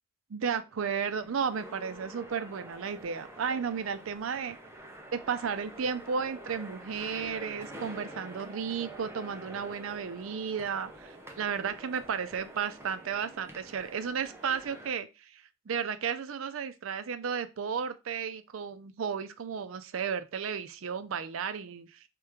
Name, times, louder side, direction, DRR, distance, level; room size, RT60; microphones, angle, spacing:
voice 1, 0.3-4.6 5.1-22.0, right 6 dB, 75° right, 0.5 m, -33 dB
sound 1, 0.7-14.9, right 1 dB, 15° right, 0.6 m, -47 dB
3.3 x 3.1 x 3.5 m
head